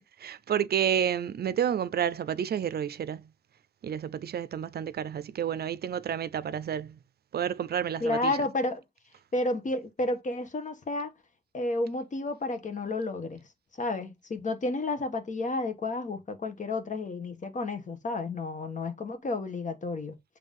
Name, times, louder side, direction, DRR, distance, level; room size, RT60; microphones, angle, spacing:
voice 1, 0.0-3.3 3.8-7.0 7.3-8.3, right 9 dB, 65° right, 0.5 m, -30 dB
voice 2, 8.0-8.8 9.3-11.1 11.5-13.4 13.8-20.1, left 2 dB, 45° left, 1.5 m, -31 dB
7.6 x 3.3 x 5.3 m
wide cardioid pair, 125°, 17 cm